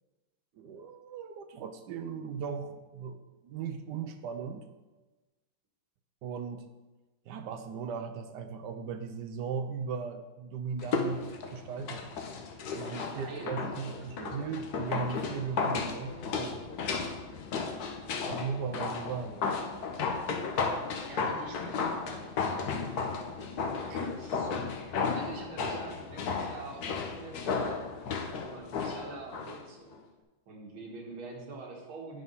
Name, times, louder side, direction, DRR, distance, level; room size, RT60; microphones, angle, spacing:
voice 1, 0.6-4.7 6.2-6.7 7.3-12.1 12.7-16.7 18.3-19.4 23.9-24.1, right 6 dB, 75° right, 8 dB, 1.0 m, -38 dB
sound 1, 10.8-29.6 29.9-30.0, left 4 dB, 60° left, 1.2 m, -34 dB
voice 2, 12.8-14.4 21.1-30.0 30.5-32.2, right 3 dB, 90° right, -1 dB, 2.3 m, -46 dB
9.6 x 4.1 x 5.5 m, 1.2 s
omnidirectional pair, 2.2 m